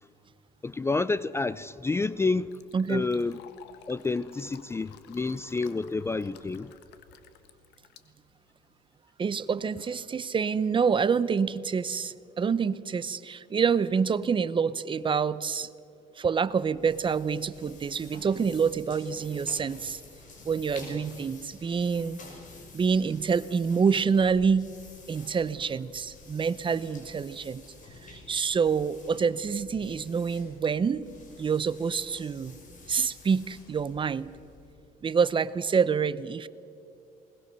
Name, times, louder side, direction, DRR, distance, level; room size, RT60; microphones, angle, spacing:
voice 1, 0.6-2.5 2.9-3.4 3.9-6.8, left 3 dB, 15° left, 0.4 m, -29 dB
Fill (with liquid), 1.9-8.8, left 9 dB, 80° left, 1.5 m, -54 dB
voice 2, 2.7-3.1 9.2-15.7 16.2-20.0 20.4-22.2 22.7-24.7 25.1-27.6 28.0-31.1 31.4-32.6 32.9-34.3 35.0-36.5, right 6 dB, 30° right, 0.7 m, -27 dB
sound 1, 16.4-34.8, left 3 dB, 50° left, 5.4 m, -50 dB
21.0 x 19.5 x 6.8 m
cardioid pair, 110°, 17 cm